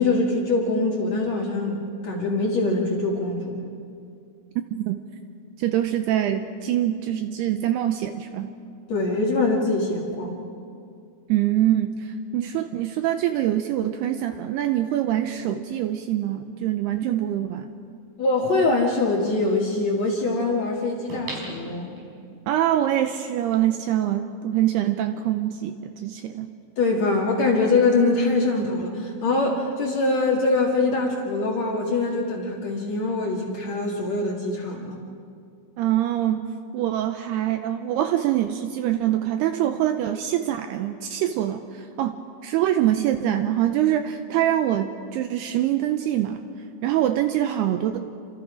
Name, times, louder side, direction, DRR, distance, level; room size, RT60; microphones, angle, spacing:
voice 1, 0.0-3.6 8.9-10.4 18.2-21.9 26.8-35.0, left 3 dB, 50° left, -2 dB, 2.3 m, -23 dB
voice 2, 5.6-8.5 11.3-17.7 22.5-26.5 35.8-36.4 36.7-42.2 42.4-46.4 46.8-48.0, right 12 dB, 85° right, 8 dB, 2.3 m, -24 dB
sound 1, 17.5-17.6 21.1-22.4 22.9-23.0, right 1 dB, 55° right, 7.1 m, -37 dB
29.0 x 26.0 x 5.0 m, 2.4 s
omnidirectional pair, 5.5 m